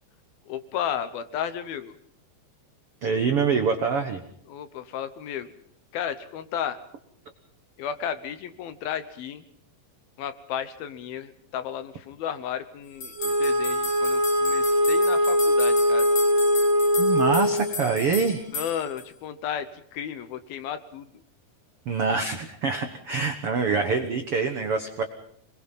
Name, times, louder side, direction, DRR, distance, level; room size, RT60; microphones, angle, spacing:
voice 1, 0.5-2.0 4.5-5.5 5.9-6.8 7.8-9.4 10.2-16.1 18.5-21.1, left 9 dB, 70° left, 11 dB, 2.7 m, -33 dB
voice 2, 3.0-4.2 17.0-18.5 21.8-25.0, right 5 dB, 75° right, 6 dB, 1.3 m, -25 dB
sound 1, 13.0-19.1, left 3 dB, 35° left, 6.5 m, -35 dB
Wind instrument woodwind instrument, 13.2-17.8, equal, 30° right, 3.0 m, -22 dB
26.0 x 21.0 x 5.6 m, 0.66 s
omnidirectional pair, 4.8 m